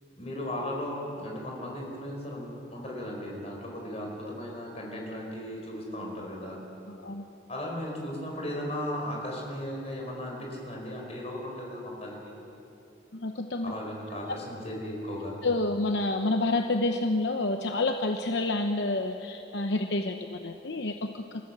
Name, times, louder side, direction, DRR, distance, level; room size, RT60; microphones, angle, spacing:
voice 1, 0.2-6.6 7.5-12.3 13.6-15.4, left 1 dB, 35° left, -1 dB, 4.5 m, -36 dB
voice 2, 6.9-7.2 13.1-13.7 15.4-21.5, left 2 dB, 70° left, 5 dB, 0.9 m, -29 dB
27.0 x 15.0 x 7.4 m, 2.9 s
head